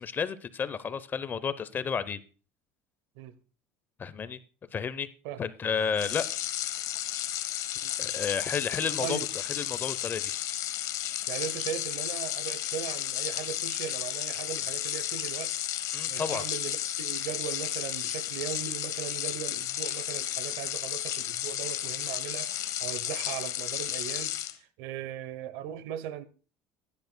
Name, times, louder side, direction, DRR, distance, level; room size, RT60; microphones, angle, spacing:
voice 1, 0.0-2.2 4.0-4.4 4.7-5.1 5.4-6.3 8.0-9.2 9.5-10.3 15.9-16.4, left 6 dB, 25° left, 0.6 m, -31 dB
sound 1, 5.9-24.6, left 12 dB, 55° left, 1.0 m, -33 dB
voice 2, 7.8-8.2 9.0-9.3 11.3-15.5 16.1-26.3, right 10 dB, 80° right, 0.8 m, -38 dB
16.0 x 10.5 x 2.2 m
cardioid pair, 135°, 7 cm